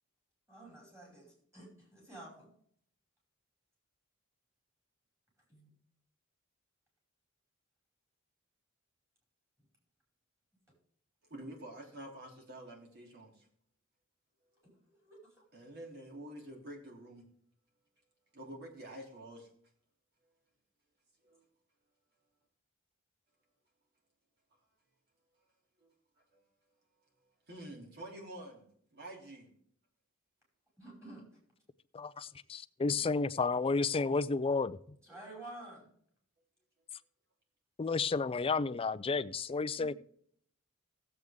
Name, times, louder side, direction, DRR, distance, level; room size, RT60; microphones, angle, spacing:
voice 1, 0.5-2.5 5.5-5.7 14.9-15.4 30.8-31.3 35.0-35.9 39.7-39.9, right 2 dB, 15° right, 5.3 m, -51 dB
voice 2, 11.3-13.4 15.5-17.2 18.3-19.5 21.2-21.4 25.8-25.9 27.5-29.5, right 1 dB, 50° right, 3.1 m, -48 dB
voice 3, 31.9-34.8 37.8-39.9, left 4 dB, 25° left, 0.4 m, -32 dB
16.0 x 7.9 x 3.6 m
head